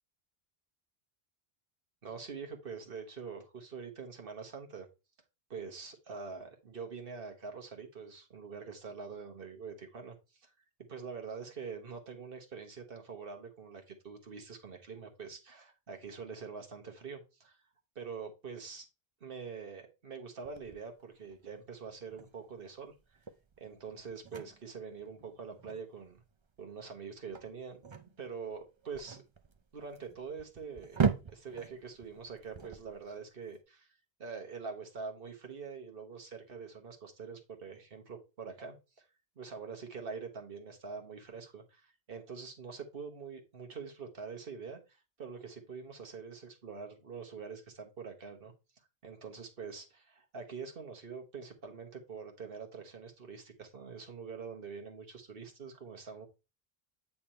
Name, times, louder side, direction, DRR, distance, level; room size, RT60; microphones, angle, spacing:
voice 1, 2.0-4.9 5.5-10.2 10.4-10.5 10.9-17.6 17.9-18.8 19.2-22.9 23.6-26.2 26.6-27.8 28.2-29.2 29.7-31.0 31.3-33.9 34.2-39.1 39.4-44.8 45.2-48.5 49.0-56.3, right 5 dB, 65° right, 3 dB, 1.5 m, -45 dB
sound 1, 20.4-33.5, right 6 dB, 35° right, 0.5 m, -40 dB
8.7 x 3.5 x 4.4 m, 0.28 s
omnidirectional pair, 1.0 m